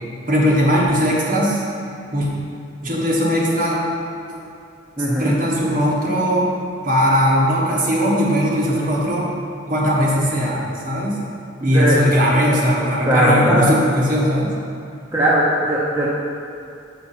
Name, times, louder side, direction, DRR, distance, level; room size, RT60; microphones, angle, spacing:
voice 1, 0.3-1.6 2.1-2.3 2.8-3.8 5.0-6.5 6.8-9.3 9.7-11.2 11.6-14.5, equal, 45° right, -4 dB, 1.2 m, -19 dB
voice 2, 5.0-5.3 11.6-12.0 13.0-13.7 15.1-16.1, right 1 dB, 15° right, -7 dB, 0.7 m, -18 dB
5.8 x 5.6 x 4.3 m, 2.5 s
head